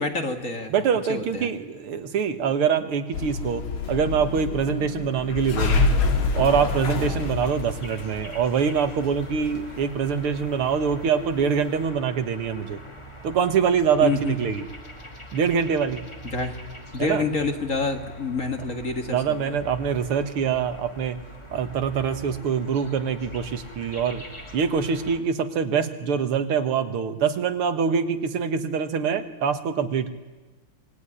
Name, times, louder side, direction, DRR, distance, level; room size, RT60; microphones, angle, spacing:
voice 1, 0.0-0.7 1.1-1.5 14.0-14.4 16.2-16.6 16.9-19.6, left 3 dB, 40° left, 6 dB, 2.0 m, -27 dB
voice 2, 0.7-5.9 6.3-12.8 13.2-14.6 15.3-16.0 17.0-17.2 19.1-21.2 21.5-24.2 24.5-30.1, right 7 dB, 80° right, 9 dB, 2.3 m, -24 dB
Hissi - Elevator, 3.1-11.9, left 4 dB, 70° left, 2.7 m, -27 dB
sound 1, 6.0-25.2, right 1 dB, 15° left, 2.3 m, -43 dB
25.0 x 20.5 x 10.0 m, 1.2 s
omnidirectional pair, 2.4 m